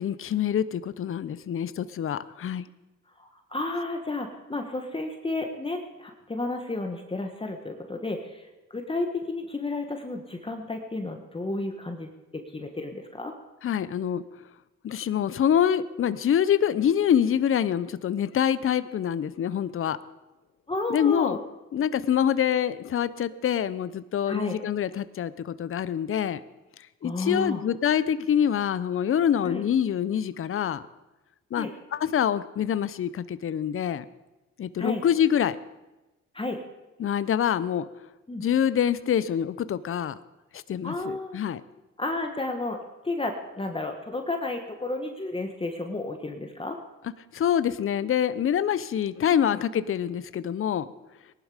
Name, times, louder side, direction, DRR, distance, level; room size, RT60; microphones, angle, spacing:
voice 1, 0.0-2.7 13.6-14.2 14.8-20.0 20.9-21.4 21.7-26.4 27.0-30.8 31.5-34.0 34.6-35.6 37.0-37.8 38.4-40.2 40.7-41.6 47.3-50.9, left 9 dB, 45° left, 15 dB, 0.7 m, -25 dB
voice 2, 3.2-13.3 20.7-21.4 21.9-22.0 24.2-24.6 27.0-27.6 29.4-29.6 31.5-31.7 34.8-35.0 36.3-36.6 38.3-38.4 40.8-41.4 42.0-46.8 49.2-49.6, left 2 dB, 20° left, 4 dB, 1.4 m, -32 dB
19.5 x 11.5 x 5.1 m, 1.1 s
cardioid pair, 90°, 30 cm